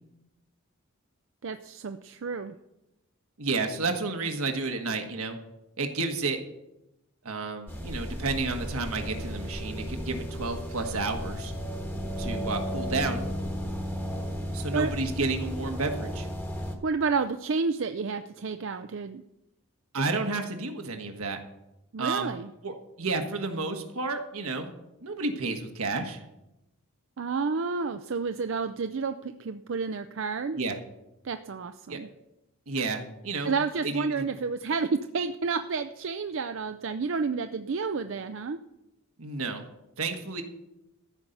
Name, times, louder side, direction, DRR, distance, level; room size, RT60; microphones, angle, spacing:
voice 1, 1.4-2.5 14.7-14.9 16.8-19.2 21.9-22.5 27.2-30.6 31.2-32.1 33.4-38.6, right 4 dB, 60° right, 8 dB, 0.5 m, -30 dB
voice 2, 3.4-5.4 5.8-6.4 7.2-11.5 12.2-13.3 14.5-16.3 19.9-21.4 22.0-22.3 22.6-24.7 25.0-26.2 30.5-30.8 31.9-32.0 32.7-34.2 39.2-39.6 40.0-40.4, right 3 dB, 75° right, 5 dB, 1.5 m, -31 dB
sound 1, 7.7-16.8, equal, 10° left, 1.2 m, -34 dB
14.0 x 5.6 x 7.9 m, 0.90 s
head